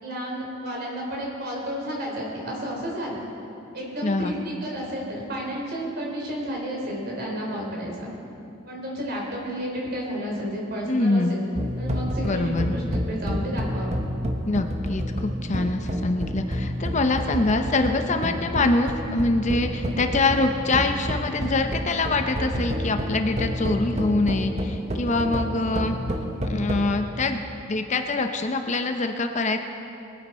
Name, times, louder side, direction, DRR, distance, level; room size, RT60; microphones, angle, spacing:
voice 1, 0.0-3.2 3.7-8.1 8.7-11.5 11.8-14.0, equal, 50° right, -2 dB, 3.6 m, -31 dB
voice 2, 4.0-4.4 10.9-11.4 12.2-12.8 14.5-26.0 26.5-27.4 27.7-29.6, left 2 dB, 35° left, 6 dB, 0.6 m, -24 dB
sound 1, 11.6-26.9, equal, 35° right, 1.0 m, -29 dB
21.0 x 9.7 x 4.3 m, 2.7 s
head